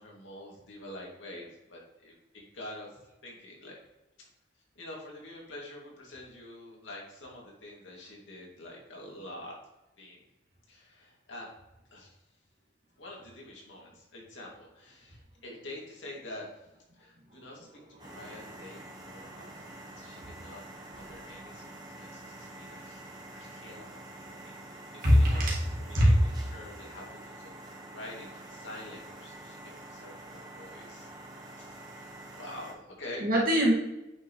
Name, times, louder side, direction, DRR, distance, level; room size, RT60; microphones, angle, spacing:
voice 1, 0.0-2.9 3.2-3.8 4.2-4.3 4.8-9.5 10.0-10.2 10.7-11.5 11.9-12.2 13.0-16.6 16.9-20.6 20.9-23.9 24.2-31.1 31.6-33.3, left 1 dB, 85° left, -2 dB, 2.4 m, -47 dB
sound 1, 18.0-32.7, right 1 dB, 20° right, 1.3 m, -47 dB
voice 2, 25.0-25.7 25.9-26.2 33.2-33.7, equal, 50° right, -3 dB, 2.0 m, -22 dB
8.7 x 5.6 x 3.1 m, 0.97 s
head